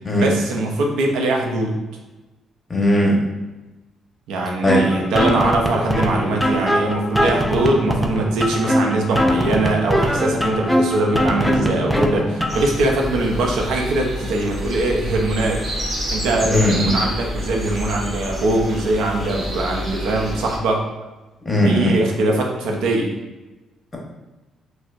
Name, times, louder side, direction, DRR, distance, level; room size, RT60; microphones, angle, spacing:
voice 1, 0.2-1.7 4.3-15.7 16.1-20.8 21.6-23.1, right 2 dB, 90° right, 0 dB, 0.5 m, -21 dB
voice 2, 2.7-3.2 4.6-4.8 16.5-16.9 21.4-22.0, left 1 dB, 25° left, -2 dB, 0.8 m, -17 dB
sound 1, 4.7-12.7, equal, ahead, 0.4 m, -21 dB
sound 2, 12.5-20.6, equal, 40° right, 1.3 m, -28 dB
4.2 x 2.0 x 2.4 m, 1.1 s
cardioid pair, 90°, 0 cm